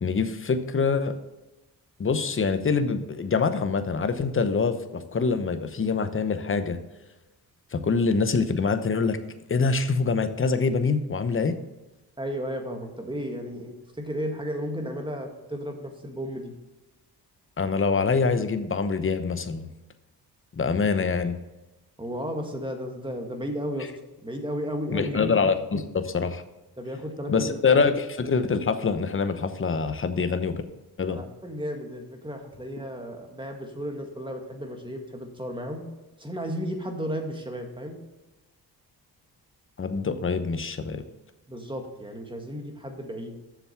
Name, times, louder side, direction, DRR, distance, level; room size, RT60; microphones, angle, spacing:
voice 1, 0.0-1.1 2.0-6.8 7.7-9.2 9.5-11.5 17.6-19.7 20.5-21.4 24.9-26.4 27.3-30.6 31.0-31.2 39.8-41.0, left 4 dB, 30° left, 10 dB, 0.9 m, -25 dB
voice 2, 12.2-16.5 22.0-23.9 24.2-25.2 26.8-27.9 31.1-35.8 36.2-38.0 41.5-43.4, equal, 10° right, 3 dB, 1.8 m, -34 dB
7.4 x 6.8 x 5.9 m, 1.1 s
cardioid pair, 85°, 39 cm